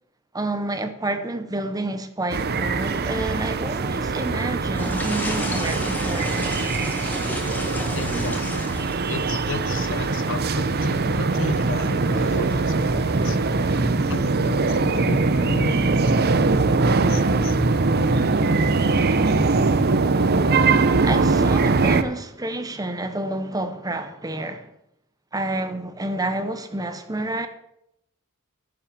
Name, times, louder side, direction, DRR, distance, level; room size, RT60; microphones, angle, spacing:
voice 1, 0.3-6.5 20.5-24.7 25.3-27.5, right 2 dB, 15° right, 0.8 m, -29 dB
sound 1, 2.3-22.0, right 3 dB, 50° right, 0.7 m, -22 dB
sound 2, 4.7-13.7, left 1 dB, 10° left, 1.7 m, -35 dB
voice 2, 7.9-8.8 9.0-13.4 14.1-18.2, left 3 dB, 65° left, 0.9 m, -34 dB
10.5 x 7.4 x 7.1 m
head